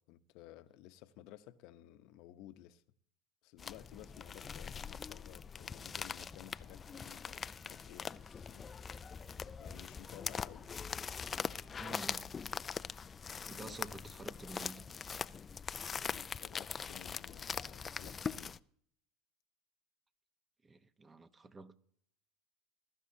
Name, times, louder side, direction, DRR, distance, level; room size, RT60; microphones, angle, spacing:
voice 1, 0.0-2.8 3.4-8.7 9.6-10.7 13.4-13.8 16.0-18.6, left 13 dB, 65° left, 0.9 m, -55 dB
sound 1, 3.6-18.6, left 6 dB, 30° left, 0.4 m, -42 dB
voice 2, 11.8-12.3 13.4-14.9 20.6-21.8, right 3 dB, 20° right, 1.0 m, -49 dB
21.5 x 12.5 x 2.8 m
supercardioid pair, 95°, 0 cm